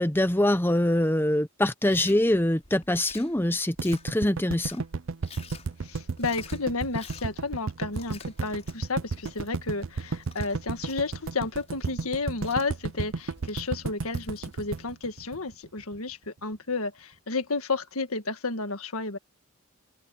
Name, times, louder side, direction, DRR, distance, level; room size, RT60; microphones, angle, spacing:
voice 1, 0.0-4.8, left 1 dB, 10° left, 0.8 m, -24 dB
Chewing mastication, 1.9-14.9, left 6 dB, 30° left, 6.2 m, -51 dB
sound 1, 3.8-16.0, right 4 dB, 60° right, 0.5 m, -33 dB
voice 2, 5.8-19.2, left 3 dB, 85° left, 1.7 m, -32 dB
head